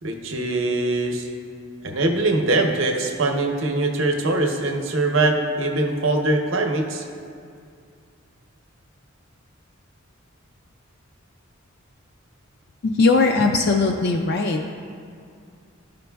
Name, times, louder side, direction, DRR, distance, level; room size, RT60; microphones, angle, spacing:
voice 1, 0.0-1.3 1.8-7.0, right 2 dB, 65° right, 3 dB, 0.7 m, -22 dB
voice 2, 12.8-14.6, left 3 dB, 50° left, 2 dB, 0.4 m, -19 dB
12.5 x 5.1 x 2.3 m, 2.3 s
head